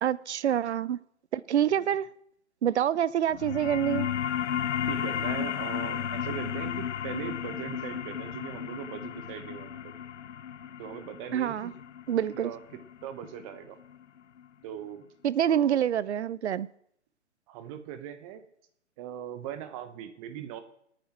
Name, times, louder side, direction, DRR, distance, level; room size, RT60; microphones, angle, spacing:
voice 1, 0.0-1.0 1.3-2.1 2.6-4.1 11.3-11.7 12.1-12.5 15.2-16.7, right 10 dB, 70° right, 0.6 m, -26 dB
sound 1, 3.3-14.4, left 9 dB, 80° left, 0.7 m, -34 dB
voice 2, 4.9-9.9 10.8-11.7 12.3-13.8 14.6-15.1 15.5-15.8 17.5-18.4 19.0-20.6, right 10 dB, 30° right, 1.1 m, -40 dB
23.5 x 9.3 x 3.1 m
hypercardioid pair, 130°, 35 cm